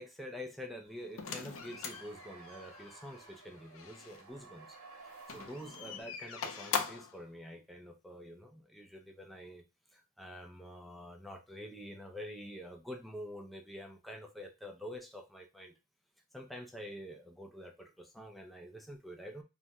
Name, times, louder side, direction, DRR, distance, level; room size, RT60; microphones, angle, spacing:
voice 1, 0.0-4.8 5.3-9.6 9.9-15.7 16.3-19.4, equal, ahead, 3 dB, 0.4 m, -47 dB
sound 1, 0.9-6.0, right 4 dB, 75° right, 0.8 m, -55 dB
sound 2, 1.2-4.2 5.2-7.2, left 6 dB, 65° left, 0.5 m, -41 dB
2.7 x 2.1 x 3.4 m, 0.27 s
head